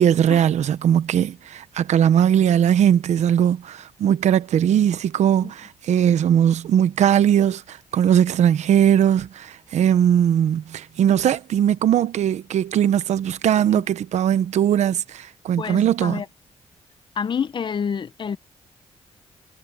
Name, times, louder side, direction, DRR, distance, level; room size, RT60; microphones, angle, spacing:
voice 1, 0.0-16.2, right 9 dB, 80° right, 0.9 m, -19 dB
voice 2, 15.6-16.3 17.2-18.4, left 6 dB, 45° left, 0.7 m, -28 dB
cardioid pair, 120°, 12 cm